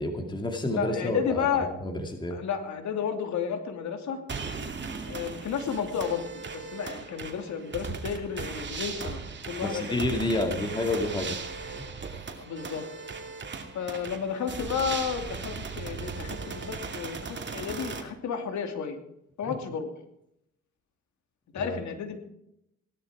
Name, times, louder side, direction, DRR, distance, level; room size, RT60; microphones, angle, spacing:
voice 1, 0.0-1.5 1.8-2.4 9.6-11.4 11.7-11.8 19.4-19.6 21.6-21.8, left 2 dB, 15° left, 3 dB, 2.3 m, -29 dB
voice 2, 0.7-1.7 2.3-4.2 5.1-9.2 9.5-10.0 10.4-10.5 12.4-12.9 13.7-19.0 19.4-19.9 21.5-22.2, left 7 dB, 70° left, 6 dB, 2.7 m, -32 dB
sound 1, 4.3-18.0, right 4 dB, 35° right, 2.6 m, -37 dB
17.5 x 12.0 x 4.8 m, 0.79 s
cardioid pair, 90°, 30 cm